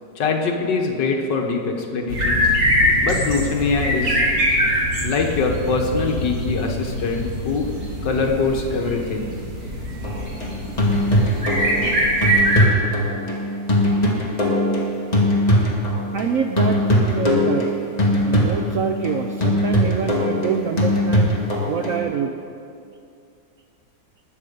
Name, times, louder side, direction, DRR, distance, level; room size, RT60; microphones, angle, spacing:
voice 1, 0.2-2.5 3.0-4.2 5.0-7.7 8.0-9.2, left 4 dB, 75° left, 2 dB, 1.9 m, -23 dB
sound 1, 2.1-12.7, equal, 40° right, 2.3 m, -23 dB
sound 2, 10.0-16.3 16.6-22.0, left 1 dB, 20° left, 1.8 m, -20 dB
voice 2, 16.1-16.8 17.1-17.7 18.2-21.4 21.7-22.3, right 7 dB, 70° right, 6 dB, 0.8 m, -25 dB
20.5 x 7.2 x 5.3 m, 2.5 s
omnidirectional pair, 2.0 m